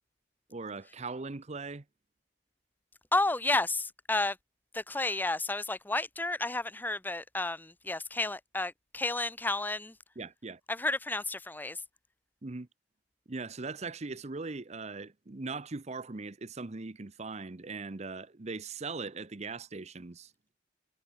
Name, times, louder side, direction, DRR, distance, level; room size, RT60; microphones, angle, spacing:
voice 1, 0.5-1.8 10.2-10.6 12.4-12.7 13.3-20.3, right 3 dB, 40° right, 0.8 m, -40 dB
voice 2, 3.1-4.4 4.7-9.9 10.7-11.8, left 2 dB, 10° left, 0.7 m, -31 dB
head